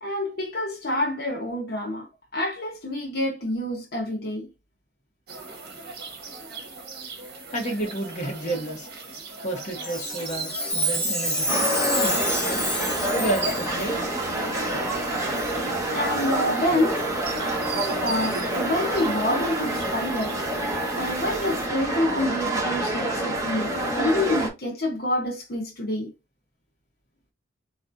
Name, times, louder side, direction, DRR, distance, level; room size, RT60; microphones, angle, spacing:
voice 1, 0.0-4.5 15.9-17.0 18.0-20.4 20.9-26.1, left 1 dB, 55° left, 1.2 m, -27 dB
sound 1, 5.3-21.7, right 3 dB, 60° right, 1.1 m, -38 dB
voice 2, 7.5-8.9 9.4-12.4 13.2-14.1, right 1 dB, 40° left, 1.4 m, -31 dB
Chime, 9.8-13.9 14.6-14.7 15.3-15.5 16.1-16.3 17.0-17.1 17.7-17.8 18.5-18.6, equal, 5° left, 0.9 m, -28 dB
sound 2, 11.5-24.5, right 1 dB, 20° right, 1.6 m, -27 dB
4.2 x 3.1 x 2.6 m
head